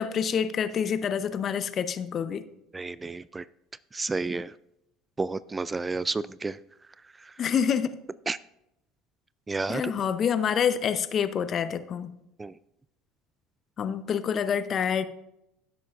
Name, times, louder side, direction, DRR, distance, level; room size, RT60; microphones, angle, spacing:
voice 1, 0.0-2.4 7.4-8.0 9.7-12.1 13.8-15.0, left 7 dB, 40° left, 12 dB, 0.7 m, -27 dB
voice 2, 2.7-3.4 3.9-4.5 5.2-6.6 7.2-7.3 8.3-8.4 9.5-9.9 12.4-12.5, right 3 dB, 20° right, 19 dB, 0.3 m, -31 dB
15.5 x 7.9 x 2.5 m, 0.83 s
hypercardioid pair, 70°, 0 cm